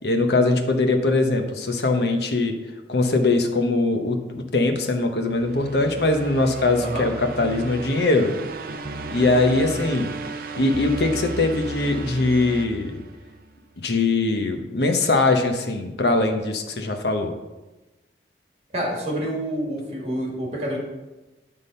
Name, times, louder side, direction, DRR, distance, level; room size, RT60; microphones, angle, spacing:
voice 1, 0.0-2.5 2.9-8.3 9.1-10.1 10.6-13.0 13.8-17.3, left 2 dB, 70° left, 5 dB, 0.9 m, -21 dB
sound 1, 5.2-13.5, right 3 dB, 55° right, 0.5 m, -34 dB
voice 2, 18.7-20.8, equal, 35° right, -3 dB, 2.2 m, -27 dB
10.0 x 3.7 x 5.5 m, 1.1 s
head